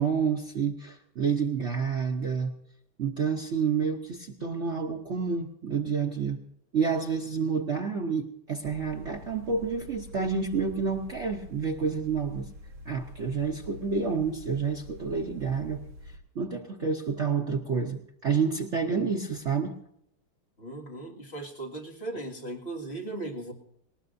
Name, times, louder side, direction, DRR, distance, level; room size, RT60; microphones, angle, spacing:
voice 1, 0.0-2.5 3.0-6.4 6.7-12.5 12.9-15.8 16.3-19.7, right 5 dB, 75° right, 3 dB, 0.6 m, -29 dB
sound 1, 8.6-16.2, equal, 55° right, 1.9 m, -46 dB
voice 2, 20.6-23.5, right 2 dB, 30° left, -1 dB, 2.1 m, -37 dB
19.0 x 19.0 x 2.6 m, 0.76 s
omnidirectional pair, 2.4 m